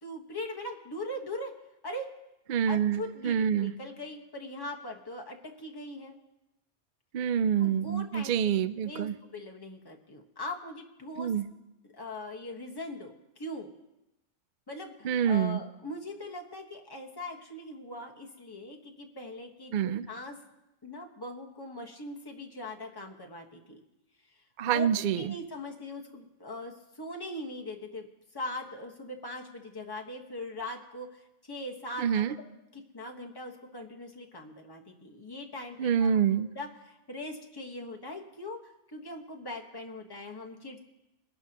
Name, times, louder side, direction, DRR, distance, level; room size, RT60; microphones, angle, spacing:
voice 1, 0.0-1.5 1.8-2.1 2.7-6.2 7.6-8.4 8.8-11.3 11.8-13.7 14.7-20.4 20.8-23.8 24.7-28.1 28.3-32.5 32.7-36.2 36.5-40.8, left 1 dB, 20° left, 0 dB, 1.3 m, -41 dB
voice 2, 2.5-3.7 7.1-9.1 11.2-11.4 15.0-15.6 19.7-20.1 24.6-25.3 32.0-32.3 35.8-36.5, right 8 dB, 60° right, 14 dB, 0.5 m, -27 dB
23.0 x 11.5 x 2.9 m, 0.94 s
omnidirectional pair, 1.2 m